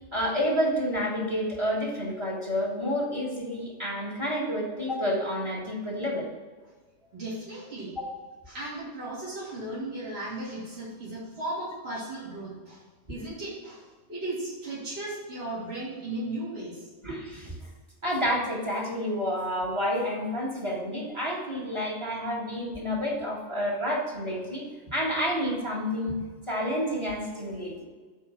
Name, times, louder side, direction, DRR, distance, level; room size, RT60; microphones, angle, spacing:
voice 1, 0.1-6.3 8.0-8.1 17.0-17.6 18.0-26.2 26.5-27.9, equal, 20° right, -2 dB, 1.7 m, -29 dB
voice 2, 7.1-7.9 8.5-12.8 13.1-16.9, right 1 dB, 50° right, -9 dB, 2.8 m, -36 dB
8.0 x 4.4 x 6.1 m, 1.4 s
omnidirectional pair, 1.3 m